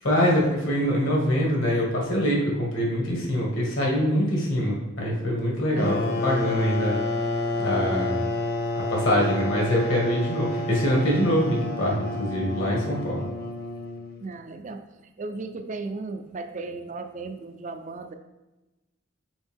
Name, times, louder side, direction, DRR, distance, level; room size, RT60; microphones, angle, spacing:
voice 1, 0.0-7.0 7.6-8.2 8.7-13.3, equal, 65° left, -2 dB, 1.7 m, -24 dB
sound 1, 5.7-14.2, left 2 dB, 45° left, 0.7 m, -29 dB
voice 2, 5.7-6.2 14.2-14.8 15.2-18.1, right 3 dB, 35° right, 7 dB, 0.4 m, -35 dB
6.3 x 4.7 x 3.5 m, 1.1 s
head